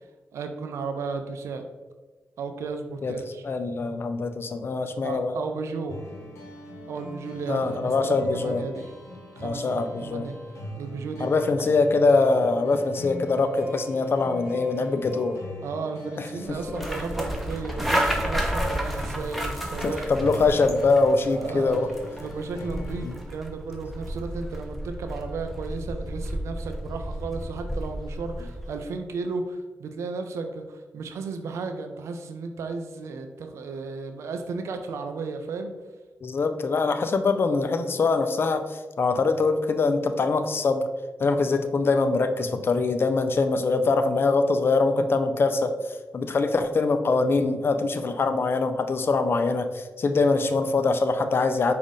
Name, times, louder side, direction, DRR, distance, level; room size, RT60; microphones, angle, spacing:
voice 1, 0.3-1.6 2.4-3.4 5.0-6.0 6.9-8.9 9.4-10.4 10.8-11.5 15.6-20.1 21.3-21.8 22.2-35.7, right 4 dB, 85° right, 6 dB, 0.4 m, -34 dB
voice 2, 3.4-5.4 7.5-8.6 9.4-10.3 11.2-15.4 16.2-16.9 19.8-21.9 23.0-23.1 36.2-40.8 41.2-45.7 46.1-51.7, left 3 dB, 55° left, 8 dB, 0.4 m, -23 dB
sound 1, 5.9-23.2, left 1 dB, 85° left, 0.9 m, -41 dB
sound 2, 16.5-28.7, equal, ahead, 0.9 m, -32 dB
5.0 x 2.5 x 3.9 m, 1.3 s
cardioid pair, 55°, 5 cm